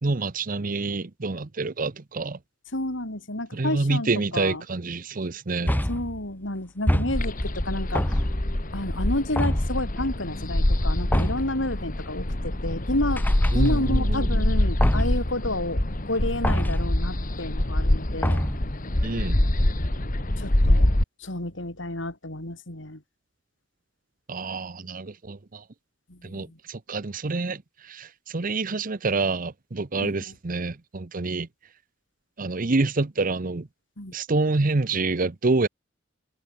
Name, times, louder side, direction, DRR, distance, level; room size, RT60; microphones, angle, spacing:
voice 1, 0.0-2.4 3.5-5.8 13.5-14.5 19.0-19.4 24.3-25.6 26.2-31.5 32.4-33.7 34.1-35.7, right 3 dB, 45° right, 0.8 m, -27 dB
voice 2, 2.7-4.6 5.9-8.2 8.7-13.2 13.5-18.5 20.4-20.9 21.2-23.0 26.1-26.6 30.0-30.1 34.0-34.1, left 1 dB, 80° left, 5.2 m, -30 dB
sound 1, 5.7-6.2 6.9-7.5 7.9-8.6 9.4-9.9 11.1-11.6 13.2-14.0 14.8-15.3 16.4-17.0 18.2-18.8, equal, 10° left, 1.4 m, -26 dB
sound 2, 7.1-21.0, left 1 dB, 45° left, 2.0 m, -25 dB
head